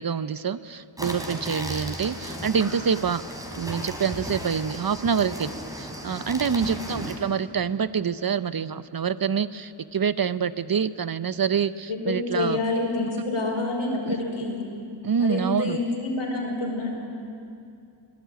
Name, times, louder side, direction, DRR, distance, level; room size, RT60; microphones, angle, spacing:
voice 1, 0.0-3.2 3.5-5.5 5.8-12.6 14.1-14.2 15.0-15.8, right 6 dB, 45° right, 15 dB, 0.7 m, -26 dB
sound 1, 1.0-7.2, equal, 5° right, 3.5 m, -35 dB
voice 2, 6.5-6.9 11.9-14.6 15.2-16.9, left 2 dB, 80° left, 0 dB, 5.3 m, -28 dB
24.5 x 17.5 x 9.3 m, 2.5 s
wide cardioid pair, 105°, 49 cm